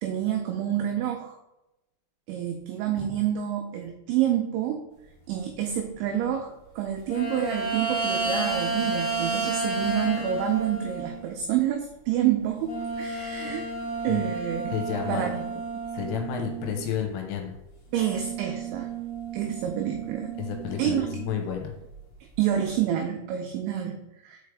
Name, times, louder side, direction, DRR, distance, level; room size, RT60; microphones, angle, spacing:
voice 1, 0.0-1.4 2.3-4.8 5.3-13.7 14.0-14.7 15.1-15.5 15.7-15.8 17.9-18.9 19.3-20.4 20.8-21.1 22.4-24.4, right 10 dB, 85° right, 3 dB, 2.6 m, -28 dB
sound 1, 7.1-11.3 12.6-16.9 17.9-21.4 21.9-22.0, right 3 dB, 40° left, 1.3 m, -32 dB
voice 2, 14.7-15.3 15.9-17.5 20.4-21.7, left 9 dB, 85° left, 3 dB, 3.2 m, -31 dB
6.5 x 4.8 x 3.3 m, 0.90 s
omnidirectional pair, 5.9 m